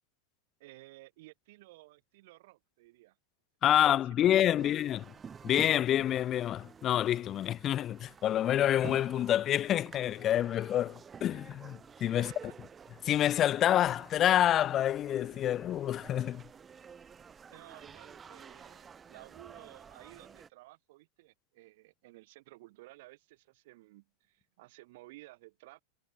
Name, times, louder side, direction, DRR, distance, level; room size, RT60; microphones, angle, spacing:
voice 1, 0.6-3.2 3.8-4.9 12.1-12.5 17.5-25.8, right 20 dB, 50° right, 4.7 m, -55 dB
voice 2, 3.6-5.0 5.4-12.3 13.0-16.4, left 11 dB, 30° left, 1.4 m, -27 dB
sound 1, 4.6-20.5, right 6 dB, 20° right, 3.4 m, -51 dB
figure-of-eight pair, 90°, 0 cm